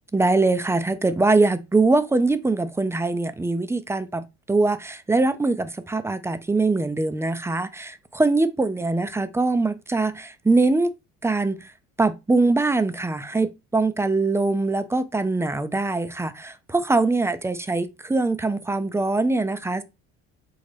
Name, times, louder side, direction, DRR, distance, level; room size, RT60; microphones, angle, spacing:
voice 1, 0.1-10.9 11.2-11.7 12.0-19.8, right 3 dB, 10° right, 0.3 m, -22 dB
3.9 x 2.1 x 3.2 m
supercardioid pair, 80°, 30 cm